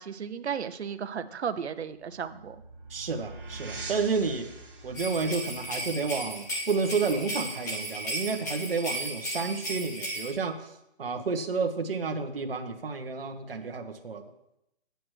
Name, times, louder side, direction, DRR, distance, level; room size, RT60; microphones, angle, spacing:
voice 1, 0.0-2.6, right 7 dB, 90° right, 10 dB, 0.7 m, -34 dB
sound 1, 1.8-7.2, right 2 dB, 5° right, 1.7 m, -44 dB
voice 2, 2.9-4.5 4.8-10.7 11.0-14.2, right 4 dB, 60° right, 5 dB, 1.1 m, -30 dB
sound 2, 5.0-10.3, right 1 dB, 15° left, 0.9 m, -35 dB
9.1 x 8.0 x 3.2 m, 0.84 s
hypercardioid pair, 180°, 32 cm